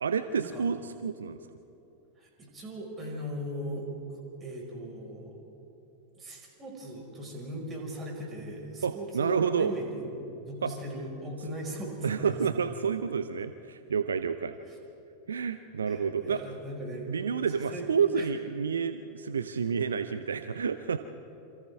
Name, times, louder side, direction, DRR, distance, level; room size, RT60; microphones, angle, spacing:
voice 1, 0.0-1.4 8.8-9.7 10.6-10.7 12.0-14.6 15.3-16.4 17.1-21.0, right 6 dB, 70° right, 11 dB, 0.6 m, -29 dB
voice 2, 2.2-5.4 6.1-10.1 10.5-12.4 14.7-14.8 15.8-18.3, right 1 dB, 20° right, 0 dB, 5.2 m, -39 dB
28.0 x 26.5 x 3.6 m, 3.0 s
figure-of-eight pair, 90°, 0 cm